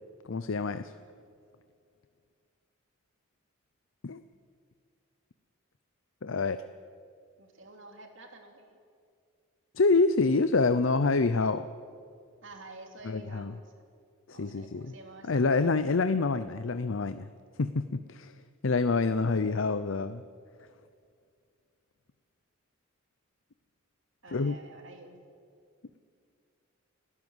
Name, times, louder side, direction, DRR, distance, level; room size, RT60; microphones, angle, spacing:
voice 1, 0.3-0.9 4.0-4.2 6.2-6.6 9.8-11.7 13.0-13.5 14.3-14.9 15.3-17.3 17.6-18.3 18.6-20.2 24.3-24.6, left 3 dB, 65° left, 11 dB, 0.6 m, -27 dB
voice 2, 7.4-8.8 12.4-13.7 14.3-15.7 24.2-25.2, right 2 dB, 60° right, 4 dB, 2.8 m, -49 dB
30.0 x 12.5 x 7.9 m, 2.3 s
head